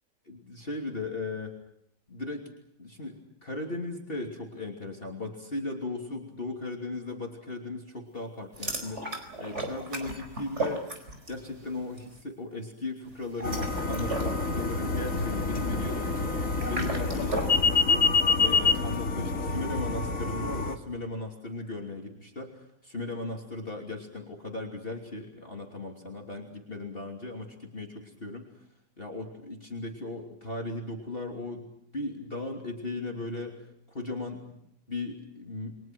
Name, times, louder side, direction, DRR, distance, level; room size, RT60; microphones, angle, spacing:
voice 1, 0.3-1.5 2.1-2.5 2.8-9.0 9.4-10.9 11.3-18.1 18.4-28.5 29.0-31.7 31.9-33.6 33.9-35.8, left 2 dB, 30° left, 0 dB, 3.2 m, -37 dB
sound 1, 8.5-11.5 11.7-12.1 13.2-17.6, right 2 dB, 40° right, 4.9 m, -36 dB
sound 2, 13.4-20.8, left 4 dB, 50° left, 2.4 m, -27 dB
29.5 x 23.5 x 6.2 m, 0.76 s
omnidirectional pair, 1.8 m